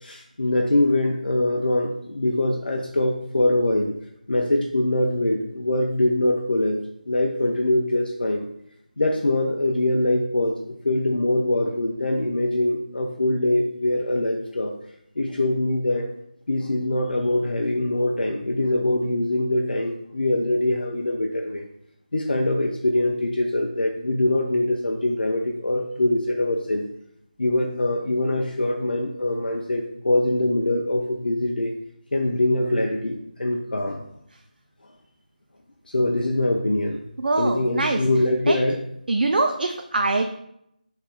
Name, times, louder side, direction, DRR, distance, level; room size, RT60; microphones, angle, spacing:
voice 1, 0.0-3.9 4.3-6.8 7.1-8.5 9.0-14.7 15.2-16.0 16.5-21.6 22.1-26.8 27.4-31.7 32.1-34.0 35.9-37.0 37.4-38.8, left 1 dB, 85° left, 1 dB, 0.4 m, -23 dB
voice 2, 37.2-38.0 38.5-38.6 39.1-40.4, right 2 dB, 75° right, 4 dB, 0.3 m, -23 dB
3.1 x 2.9 x 3.6 m, 0.76 s
figure-of-eight pair, 170°, 5 cm